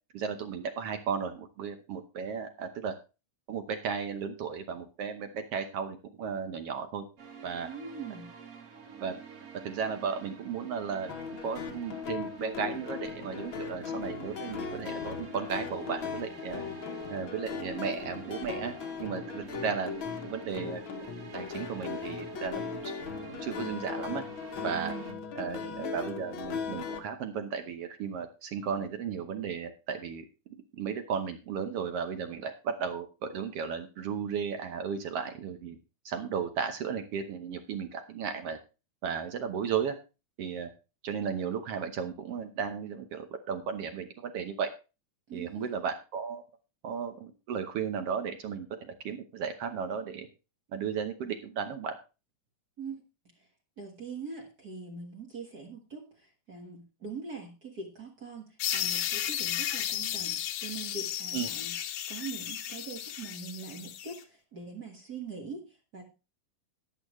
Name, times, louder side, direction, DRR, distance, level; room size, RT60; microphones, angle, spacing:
voice 1, 0.1-2.9 3.5-7.0 7.4-7.7 9.0-9.1 9.6-11.1 11.4-16.6 17.1-18.7 19.0-19.9 20.2-20.8 21.3-22.9 23.3-24.2 24.6-24.9 25.3-30.3 30.7-35.8 36.0-38.6 39.0-39.9 40.4-40.7 41.0-44.7 45.3-46.4 46.8-48.7 49.0-50.3 50.7-51.9 61.3-61.5, right 6 dB, 65° right, 8 dB, 1.5 m, -35 dB
sound 1, 7.2-25.1, right 6 dB, 90° right, 0.7 m, -48 dB
voice 2, 7.6-8.3 24.7-25.9 45.3-45.7 52.8-53.0 53.8-61.8 62.1-66.0, right 4 dB, 40° right, 2 dB, 1.4 m, -42 dB
sound 2, 11.1-27.0, left 6 dB, 55° left, 1.5 m, -38 dB
sound 3, 58.6-64.2, left 11 dB, 80° left, 2.6 m, -34 dB
13.0 x 10.5 x 3.1 m, 0.30 s
omnidirectional pair, 3.7 m